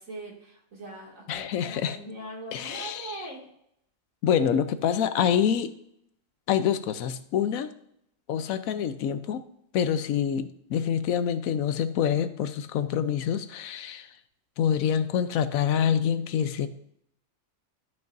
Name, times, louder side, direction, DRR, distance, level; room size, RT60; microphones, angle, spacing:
voice 1, 0.0-3.4, right 2 dB, 75° right, -3 dB, 2.7 m, -41 dB
voice 2, 1.3-2.0 2.5-3.3 4.2-5.7 6.5-7.7 8.3-9.4 9.7-14.1 14.6-16.7, left 8 dB, 85° left, 11 dB, 1.1 m, -26 dB
13.0 x 5.9 x 2.6 m, 0.73 s
omnidirectional pair, 1.4 m